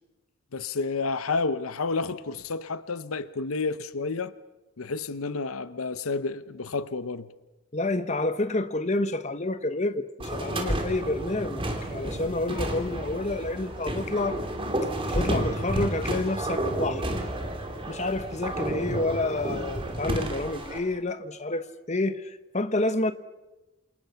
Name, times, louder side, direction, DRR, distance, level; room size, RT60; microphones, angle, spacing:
voice 1, 0.5-4.3 4.8-7.3, left 4 dB, 90° left, 0.8 m, -30 dB
voice 2, 7.7-14.4 15.1-17.1 17.9-23.1, left 2 dB, 35° left, 1.2 m, -29 dB
sound 1, 10.2-20.8, right 1 dB, 25° right, 3.0 m, -31 dB
28.5 x 28.0 x 5.8 m
head